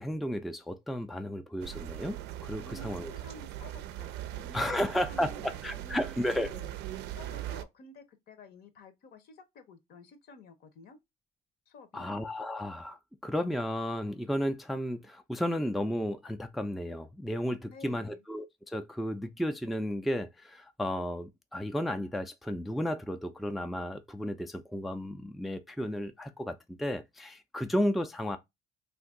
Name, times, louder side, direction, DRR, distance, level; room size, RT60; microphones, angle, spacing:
voice 1, 0.0-3.1 4.5-6.5 11.9-28.4, equal, ahead, 0.3 m, -33 dB
sound 1, 1.6-7.6, right 13 dB, 85° right, 0.4 m, -40 dB
voice 2, 2.6-6.7 7.2-11.0 11.7-12.1 17.7-18.2, left 3 dB, 65° left, 0.8 m, -52 dB
2.8 x 2.5 x 3.5 m
cardioid pair, 110°, 17 cm